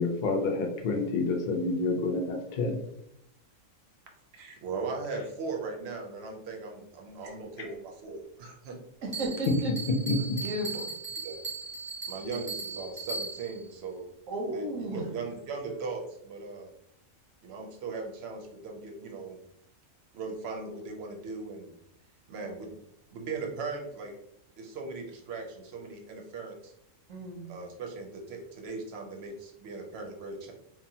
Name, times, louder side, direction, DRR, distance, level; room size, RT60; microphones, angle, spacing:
voice 1, 0.0-2.8 10.1-10.4, left 3 dB, 70° left, 2 dB, 0.4 m, -28 dB
voice 2, 4.3-8.8 11.2-11.4 12.0-14.1 14.5-16.7 17.4-19.4 20.1-21.7 22.3-22.7 23.1-24.1 24.6-26.7 27.5-30.5, right 4 dB, 60° right, 1 dB, 0.8 m, -38 dB
voice 3, 9.0-9.7 10.4-10.9 14.3-15.0 27.1-27.5, right 1 dB, 85° right, 0 dB, 1.1 m, -34 dB
Bell, 9.1-13.6, right 4 dB, 30° right, 0.5 m, -38 dB
2.8 x 2.1 x 2.7 m, 0.80 s
omnidirectional pair, 1.3 m